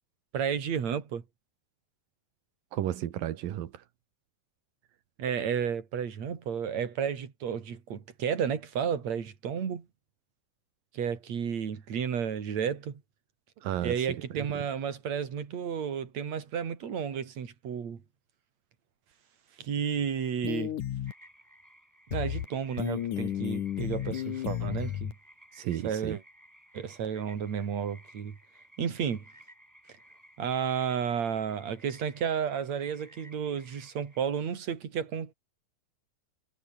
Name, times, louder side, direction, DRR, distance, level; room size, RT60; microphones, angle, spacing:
voice 1, 0.3-1.2 5.2-9.9 10.9-13.0 13.8-18.0 19.6-20.7 22.1-25.1 25.8-26.2 26.7-28.4 28.8-29.2 30.4-35.3, right 7 dB, 55° right, 4.0 m, -32 dB
voice 2, 2.7-3.8 13.6-14.6 25.5-26.2, right 12 dB, 90° right, 3.3 m, -34 dB
sound 1, 20.4-21.1 22.1-22.5 22.8-25.1, left 11 dB, 70° left, 3.0 m, -32 dB
sound 2, 21.0-34.2, equal, 5° right, 7.6 m, -57 dB
omnidirectional pair, 3.9 m